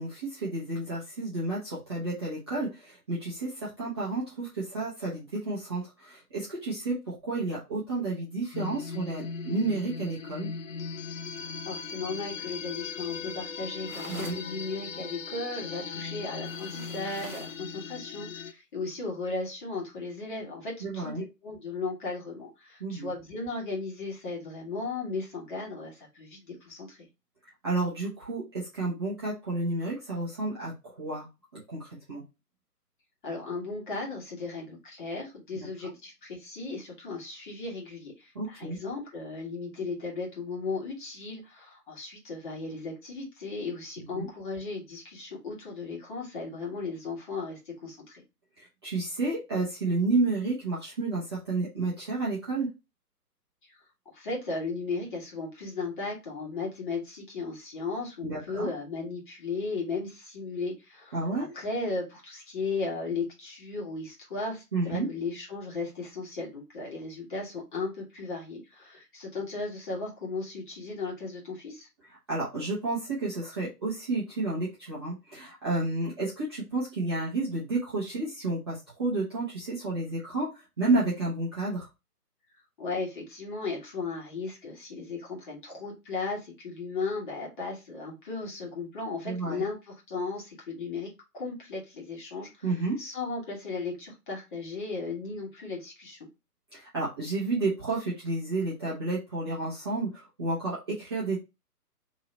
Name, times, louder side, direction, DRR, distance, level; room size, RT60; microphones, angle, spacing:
voice 1, 0.0-10.5 14.1-14.4 20.8-21.2 22.8-23.1 27.6-31.3 31.5-32.2 35.5-35.7 38.3-38.8 44.0-44.3 48.6-52.7 58.2-58.7 61.1-61.5 64.7-65.1 72.3-81.9 89.2-89.6 92.6-93.0 96.7-101.4, right 2 dB, 15° right, -8 dB, 0.7 m, -31 dB
sound 1, 8.5-18.5, left 5 dB, 55° left, 0.5 m, -38 dB
voice 2, 11.4-27.1 33.2-48.2 54.1-71.9 82.8-92.7 93.0-96.2, left 3 dB, 30° left, -2 dB, 1.5 m, -36 dB
sound 2, 13.9-14.5 16.4-17.6, right 4 dB, 60° right, 1.0 m, -44 dB
3.0 x 2.8 x 4.3 m, 0.25 s
figure-of-eight pair, 135°, 48 cm